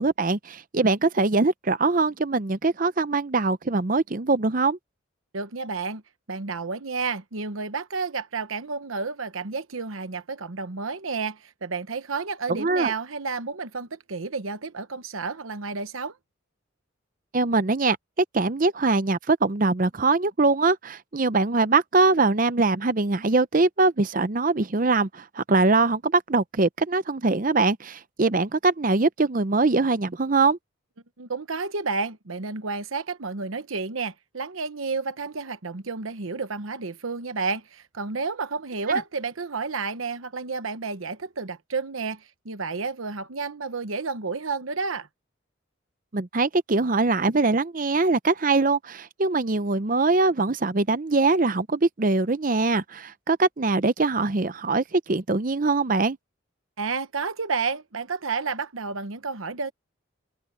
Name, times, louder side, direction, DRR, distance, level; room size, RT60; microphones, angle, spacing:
voice 1, 0.0-4.8 12.5-12.9 17.3-18.0 18.3-30.6 38.9-39.0 46.1-56.2, right 3 dB, 40° right, 0.6 m, -22 dB
voice 2, 5.3-6.0 6.3-16.2 31.2-45.1 56.8-59.7, right 4 dB, 85° right, 1.1 m, -31 dB
head